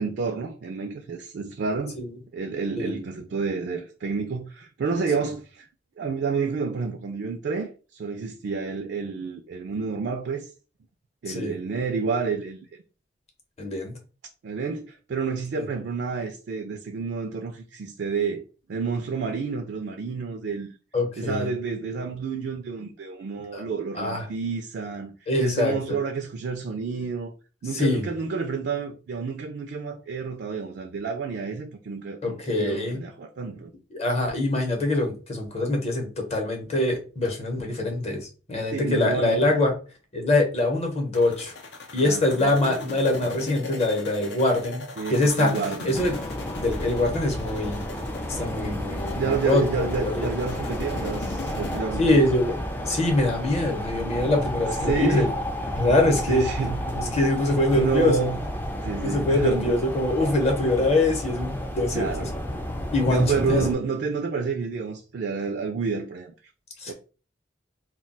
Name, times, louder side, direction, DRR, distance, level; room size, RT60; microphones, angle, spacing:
voice 1, 0.0-2.0 2.3-5.7 6.0-10.5 11.2-12.6 14.4-18.4 18.7-20.7 21.2-25.1 25.4-27.3 27.6-33.7 38.7-39.6 42.0-42.8 45.0-46.0 49.2-52.2 54.8-55.3 56.3-57.2 57.8-58.4 58.8-59.8 61.9-62.4 63.1-66.3 66.9-67.0, right 5 dB, 65° right, 0.4 m, -29 dB
voice 2, 13.6-13.9 15.6-15.7 20.9-21.5 23.5-23.6 23.9-24.3 25.3-26.0 27.7-28.0 32.2-33.0 33.9-39.7 40.1-41.5 41.9-45.6 45.8-46.2 46.6-47.8 48.3-50.3 52.0-52.6 52.9-55.3 55.8-56.5 57.1-58.1 59.0-62.3 62.9-63.6 66.8-66.9, left 2 dB, 35° left, 0.8 m, -24 dB
sound 1, 41.1-51.8, left 3 dB, 70° left, 0.5 m, -39 dB
sound 2, 45.9-63.7, equal, 10° left, 0.3 m, -31 dB
2.2 x 2.2 x 3.9 m
head